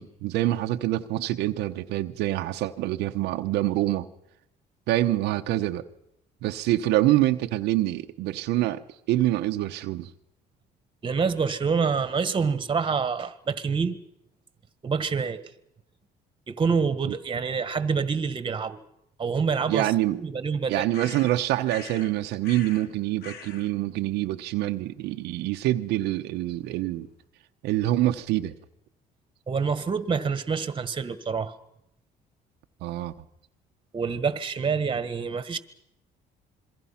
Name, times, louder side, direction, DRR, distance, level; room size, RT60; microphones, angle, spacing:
voice 1, 0.0-4.1 4.9-5.8 6.4-8.8 9.1-10.1 17.1-17.2 19.7-20.2 20.7-27.1 27.6-28.5 32.8-33.1, right 15 dB, 85° right, 1.0 m, -26 dB
voice 2, 11.0-14.0 14.8-15.4 16.5-18.8 19.2-19.9 20.1-20.8 29.5-31.5 33.9-35.6, right 5 dB, 30° right, 1.6 m, -26 dB
sound 1, 20.9-22.1 22.4-22.9 23.2-23.7, left 5 dB, 70° left, 2.4 m, -42 dB
27.0 x 23.0 x 5.8 m
cardioid pair, 110°, 17 cm